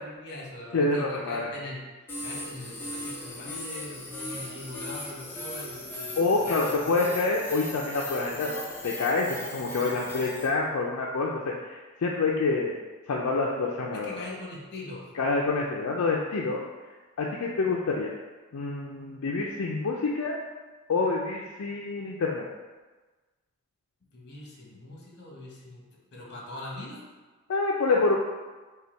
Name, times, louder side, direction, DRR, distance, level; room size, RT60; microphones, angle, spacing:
voice 1, 0.0-1.8 2.2-6.9 13.9-15.1 24.1-25.9 26.1-27.1, left 2 dB, 50° left, -3 dB, 1.1 m, -42 dB
voice 2, 0.7-1.5 6.2-12.8 13.1-14.2 15.2-16.6 17.2-18.1 18.5-20.4 20.9-22.5 27.5-28.2, left 3 dB, 70° left, -2 dB, 0.4 m, -27 dB
sound 1, 2.1-10.5, left 1 dB, 10° left, 0.6 m, -37 dB
5.4 x 2.3 x 4.4 m, 1.3 s
head